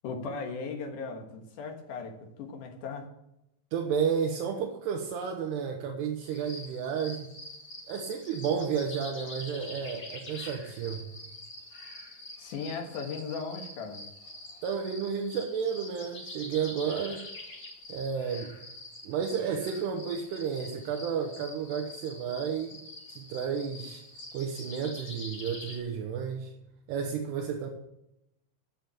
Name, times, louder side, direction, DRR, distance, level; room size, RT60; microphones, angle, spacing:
voice 1, 0.0-3.1 12.4-14.0, left 4 dB, 60° left, 3 dB, 2.2 m, -37 dB
voice 2, 3.7-7.3 7.9-11.1 14.6-17.2 17.9-18.5 19.0-22.8 23.1-24.0 24.3-26.5 26.9-27.7, right 7 dB, 70° right, 2 dB, 2.8 m, -32 dB
sound 1, 6.2-25.8, left 2 dB, 35° left, 1.5 m, -45 dB
9.3 x 8.6 x 7.2 m, 0.85 s
omnidirectional pair, 5.5 m